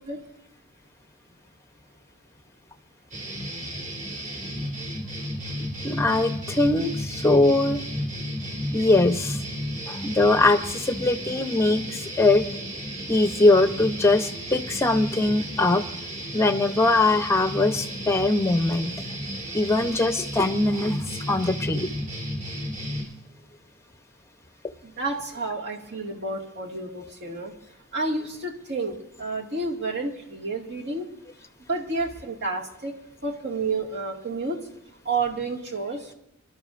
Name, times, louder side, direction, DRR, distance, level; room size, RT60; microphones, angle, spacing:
sound 1, 3.1-23.0, equal, 35° right, 3.6 m, -33 dB
voice 1, 5.8-7.8 8.7-9.4 9.9-12.5 13.1-15.8 16.3-18.9 19.5-21.0 21.2-21.9, left 2 dB, 10° left, 8 dB, 0.8 m, -21 dB
voice 2, 24.8-27.5 27.9-31.0 31.7-32.9 33.2-34.6 35.1-36.1, right 3 dB, 50° right, 0 dB, 2.1 m, -30 dB
25.0 x 12.5 x 2.6 m, 0.82 s
head